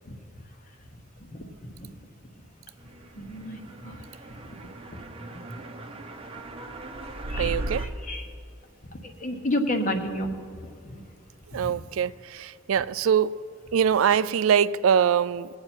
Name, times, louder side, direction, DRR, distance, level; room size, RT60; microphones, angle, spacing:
voice 1, 3.2-3.9 7.3-7.5 8.1-8.2 9.2-10.3, left 1 dB, 40° left, 1.2 m, -29 dB
sound 1, 3.4-7.9, right 1 dB, 25° right, 0.8 m, -36 dB
voice 2, 7.4-7.9 11.5-13.4 13.7-15.5, right 8 dB, 80° right, 0.4 m, -23 dB
21.5 x 8.6 x 4.5 m
head